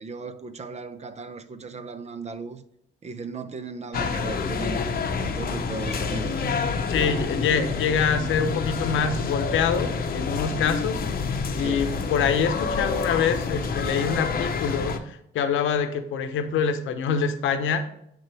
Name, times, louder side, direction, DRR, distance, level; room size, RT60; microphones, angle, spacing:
voice 1, 0.0-2.6 3.0-4.8 5.2-6.5 7.0-7.3 7.6-7.7 11.6-12.0, right 3 dB, 35° right, 0.6 m, -36 dB
sound 1, 3.9-15.0, left 4 dB, 50° left, 0.8 m, -28 dB
voice 2, 6.9-11.0 11.6-17.8, left 6 dB, 80° left, 0.8 m, -25 dB
10.0 x 3.7 x 3.3 m
cardioid pair, 90°, 20 cm